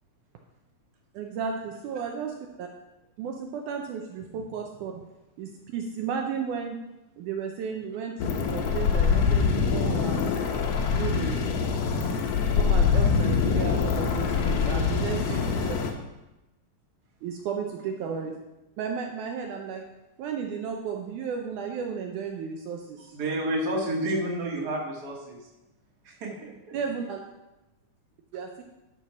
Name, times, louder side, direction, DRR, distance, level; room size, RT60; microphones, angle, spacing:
voice 1, 1.1-2.7 3.2-5.0 5.4-6.8 7.2-8.1 8.5-9.5 9.7-10.4 10.9-11.4 12.5-15.8 17.2-18.3 18.8-19.8 20.2-23.1 26.7-27.2 28.3-28.6, right 6 dB, 75° right, 2 dB, 2.1 m, -33 dB
sound 1, 8.2-15.9, left 6 dB, 70° left, 1.5 m, -24 dB
voice 2, 23.1-25.5 26.0-26.8, right 1 dB, 35° right, -2 dB, 1.9 m, -30 dB
11.0 x 4.5 x 5.8 m, 0.98 s
omnidirectional pair, 3.8 m